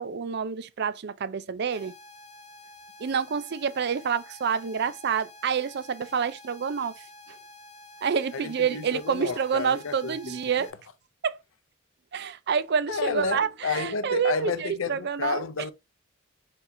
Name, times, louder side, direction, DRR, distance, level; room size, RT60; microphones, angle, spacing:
voice 1, 0.0-1.9 3.0-6.9 8.0-10.7 11.2-11.4 12.1-15.4, right 6 dB, 55° right, 0.4 m, -28 dB
sound 1, 1.7-10.7, left 2 dB, 35° left, 0.6 m, -49 dB
voice 2, 8.3-10.7 12.9-15.7, left 5 dB, 80° left, 0.6 m, -31 dB
4.5 x 4.1 x 2.7 m
head